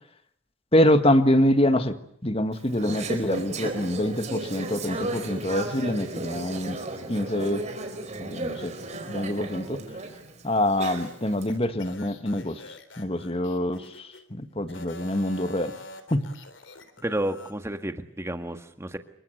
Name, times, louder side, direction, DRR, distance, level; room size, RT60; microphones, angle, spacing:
voice 1, 0.7-2.0 2.2-6.8 7.1-7.6 8.2-8.7 9.1-9.8 10.4-15.7 16.1-16.2, left 1 dB, 30° left, 9 dB, 1.8 m, -25 dB
Conversation / Chatter, 2.5-11.4, right 2 dB, 35° right, 4.6 m, -34 dB
sound 1, 10.7-14.2 14.6-17.5, left 2 dB, 70° left, 3.7 m, -46 dB
voice 2, 17.0-19.0, right 1 dB, 15° right, 7 dB, 1.8 m, -31 dB
27.0 x 23.5 x 8.1 m, 0.68 s
head